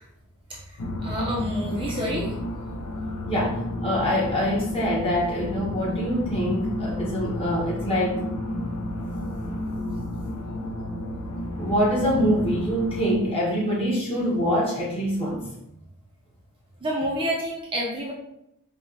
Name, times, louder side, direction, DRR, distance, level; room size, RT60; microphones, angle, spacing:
voice 1, 0.5-2.3 16.8-18.1, equal, 25° right, -3 dB, 0.5 m, -29 dB
sound 1, 0.8-13.1, left 1 dB, 75° left, 0.6 m, -31 dB
voice 2, 3.3-8.2 11.6-15.4, equal, 25° left, -5 dB, 1.1 m, -25 dB
5.1 x 2.3 x 2.6 m, 0.82 s
head